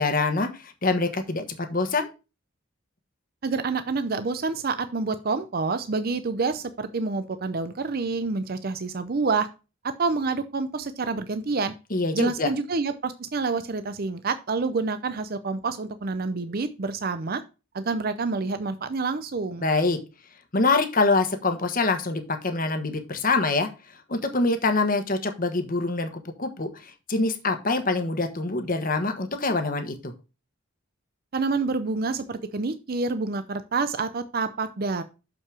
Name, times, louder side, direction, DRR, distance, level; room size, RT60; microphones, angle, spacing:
voice 1, 0.0-2.1 11.9-12.5 19.6-20.0 20.5-23.7 24.1-30.1, left 3 dB, 40° left, 7 dB, 1.3 m, -25 dB
voice 2, 3.4-9.5 9.8-11.7 12.1-17.4 17.7-19.6 31.3-35.0, right 4 dB, 45° right, 11 dB, 0.6 m, -28 dB
6.7 x 5.9 x 4.8 m, 0.30 s
head